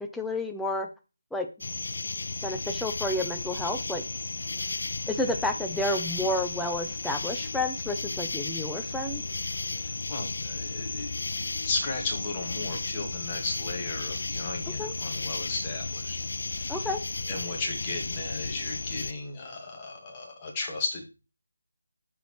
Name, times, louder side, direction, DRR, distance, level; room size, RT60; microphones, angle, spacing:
voice 1, 0.1-0.9 1.3-1.5 2.4-4.0 5.1-9.2 14.8-14.9 16.7-17.0, left 1 dB, ahead, 5 dB, 0.5 m, -30 dB
sound 1, 1.6-19.1, left 3 dB, 50° left, 0.5 m, -34 dB
voice 2, 9.7-16.2 16.5-16.9 17.3-21.0, left 3 dB, 20° left, 1 dB, 1.6 m, -35 dB
6.7 x 6.3 x 3.1 m, 0.30 s
figure-of-eight pair, 155°, 0 cm